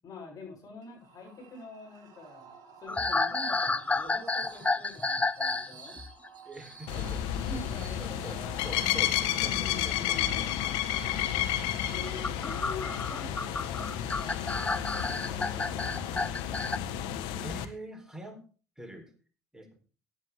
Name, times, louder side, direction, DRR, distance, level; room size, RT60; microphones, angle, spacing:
voice 1, 0.0-2.5 2.8-6.0 7.3-8.7 9.4-10.7 11.9-16.5, left 3 dB, 45° left, -1 dB, 7.8 m, -46 dB
sound 1, 0.8-16.6, right 5 dB, 50° right, 4.2 m, -53 dB
sound 2, 2.9-5.7 6.0-6.3 8.5-8.7 10.0-10.1 12.0-16.8, left 3 dB, 15° left, 1.0 m, -31 dB
voice 2, 6.4-7.3 7.8-10.5 11.0-11.5 17.4-18.5 18.8-19.1 19.5-19.8, right 1 dB, 5° right, 6 dB, 4.2 m, -45 dB
sound 3, 6.9-17.7, left 11 dB, 65° left, 1.5 m, -31 dB
16.5 x 9.9 x 3.7 m, 0.36 s
hypercardioid pair, 60°, 9 cm